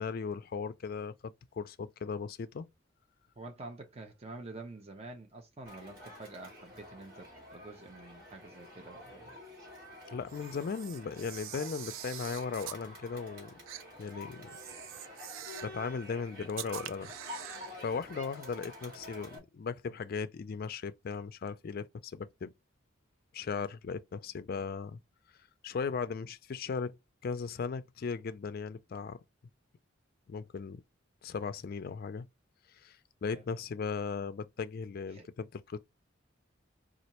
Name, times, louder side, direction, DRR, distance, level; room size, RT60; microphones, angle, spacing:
voice 1, 0.0-2.7 10.1-13.6 14.0-14.5 15.6-17.1 17.8-22.5 23.3-25.0 25.6-27.0 27.2-29.2 30.3-30.8 31.2-32.3 32.8-35.8, left 5 dB, 50° left, 0.4 m, -37 dB
voice 2, 3.4-9.4 33.2-33.4 35.1-35.3, right 2 dB, 30° right, 0.7 m, -47 dB
Crowd, 5.6-19.4, left 1 dB, 50° right, 2.0 m, -49 dB
Camera, 10.3-12.8 13.7-13.8 14.5-15.8 16.5-17.7, right 11 dB, 80° right, 0.4 m, -45 dB
4.2 x 2.4 x 2.9 m
head